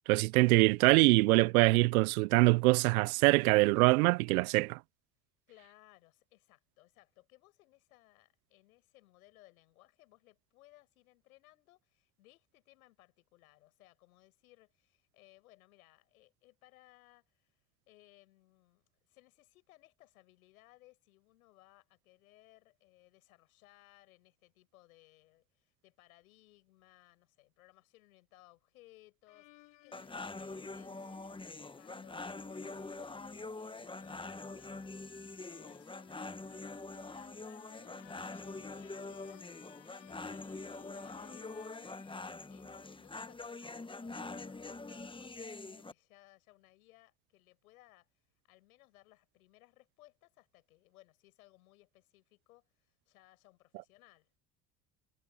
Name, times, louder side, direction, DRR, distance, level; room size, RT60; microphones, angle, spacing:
voice 1, 0.1-4.8, right 23 dB, 85° right, 0.5 m, -24 dB
voice 2, 5.5-17.5 17.9-35.1 35.5-39.4 40.2-42.0 42.5-48.1 48.5-54.3, left 18 dB, 85° left, 7.5 m, -63 dB
sound 1, 29.3-43.0, left 18 dB, 65° left, 4.3 m, -60 dB
sound 2, 29.9-45.9, left 3 dB, 10° left, 1.1 m, -44 dB
hypercardioid pair, 70°, 42 cm